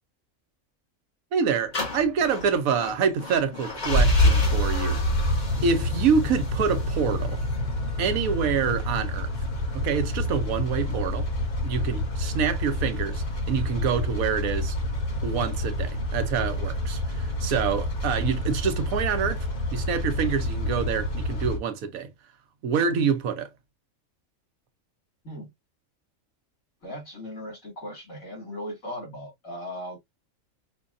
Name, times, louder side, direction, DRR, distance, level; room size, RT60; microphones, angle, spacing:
voice 1, 1.3-5.0 5.6-7.4 8.0-9.3 9.7-11.3 11.6-14.8 15.2-19.5 19.7-22.1 22.6-23.5, right 6 dB, 85° right, 1.2 m, -26 dB
sound 1, 1.7-21.6, left 1 dB, 35° left, 1.0 m, -27 dB
voice 2, 26.8-30.0, equal, 75° left, 2.7 m, -38 dB
5.4 x 2.3 x 2.4 m
omnidirectional pair, 1.4 m